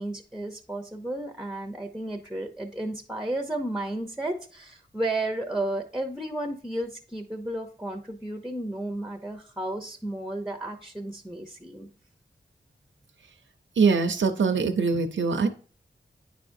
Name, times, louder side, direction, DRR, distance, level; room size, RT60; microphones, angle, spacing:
voice 1, 0.0-11.9, right 1 dB, ahead, 5 dB, 0.7 m, -33 dB
voice 2, 13.8-15.5, right 4 dB, 80° right, 6 dB, 0.6 m, -23 dB
9.2 x 4.9 x 2.6 m, 0.41 s
wide cardioid pair, 70°, 19 cm